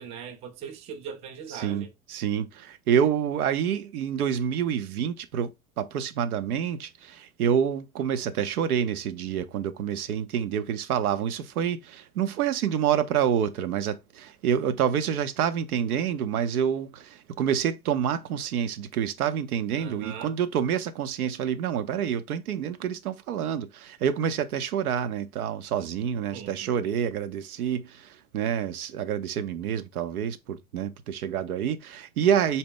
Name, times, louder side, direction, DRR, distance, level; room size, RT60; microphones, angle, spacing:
voice 1, 0.0-1.9 19.8-20.3 26.3-27.0, right 7 dB, 15° right, 0.3 m, -40 dB
voice 2, 1.5-32.6, right 8 dB, 75° right, 0.6 m, -27 dB
4.0 x 2.1 x 3.5 m
figure-of-eight pair, 85°, 44 cm